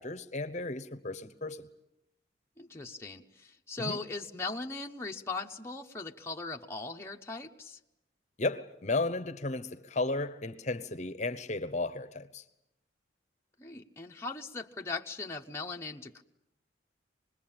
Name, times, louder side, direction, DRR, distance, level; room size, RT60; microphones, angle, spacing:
voice 1, 0.0-1.7 3.8-4.0 8.4-12.4, left 2 dB, 40° left, 0.9 m, -34 dB
voice 2, 2.6-7.8 13.6-16.2, left 3 dB, 15° left, 0.9 m, -39 dB
26.0 x 21.0 x 8.8 m
head